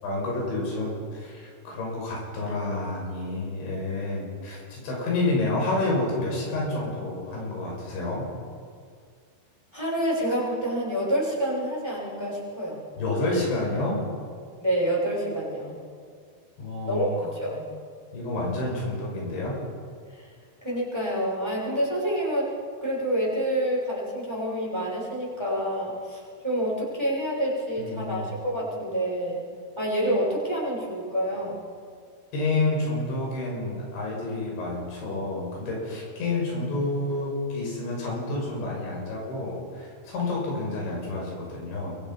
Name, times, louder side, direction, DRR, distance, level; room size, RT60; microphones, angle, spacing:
voice 1, 0.0-8.3 13.0-14.0 16.6-17.1 18.1-19.6 27.8-28.3 32.3-42.0, left 2 dB, 90° left, -2 dB, 8.6 m, -29 dB
voice 2, 9.7-12.9 14.6-15.8 16.9-17.7 20.1-20.3 20.6-22.5 22.8-29.4 29.8-31.6, equal, 5° right, -4 dB, 6.6 m, -28 dB
28.0 x 24.0 x 5.7 m, 2.1 s
omnidirectional pair, 5.1 m